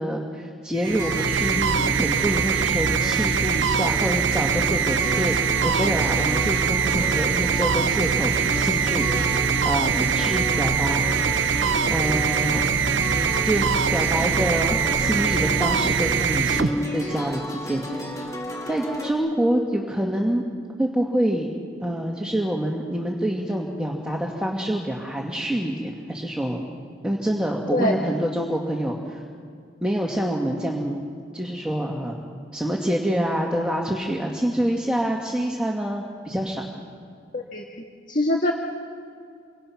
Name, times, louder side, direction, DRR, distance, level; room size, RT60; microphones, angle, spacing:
voice 1, 0.0-5.3 5.6-9.4 9.6-11.0 11.9-12.7 13.4-13.7 13.9-18.1 18.7-20.4 20.8-21.5 21.8-26.6 27.0-29.2 29.8-31.0 31.3-32.2 32.5-36.6, right 1 dB, 5° right, -2 dB, 1.8 m, -26 dB
sound 1, 0.8-19.1, left 1 dB, 15° left, 2.5 m, -34 dB
sound 2, 0.8-17.3, right 6 dB, 75° right, 0.7 m, -23 dB
voice 2, 37.3-37.6 38.1-38.5, left 1 dB, 45° left, 1 dB, 1.6 m, -23 dB
28.0 x 24.0 x 5.9 m, 2.4 s
head